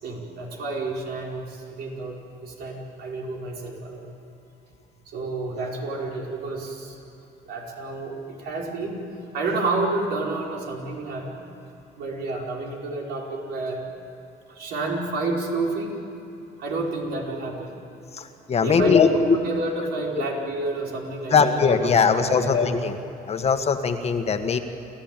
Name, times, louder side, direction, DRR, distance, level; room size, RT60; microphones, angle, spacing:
voice 1, 0.0-4.1 5.0-7.0 7.5-9.0 9.3-11.5 12.0-13.9 14.5-16.0 16.6-17.8 18.6-22.7, right 3 dB, 70° right, -1 dB, 4.9 m, -30 dB
voice 2, 18.1-19.4 20.2-20.3 21.3-23.0 23.3-24.6, left 5 dB, 40° left, 7 dB, 1.7 m, -20 dB
29.0 x 14.5 x 9.1 m, 3.0 s
cardioid pair, 110°, 17 cm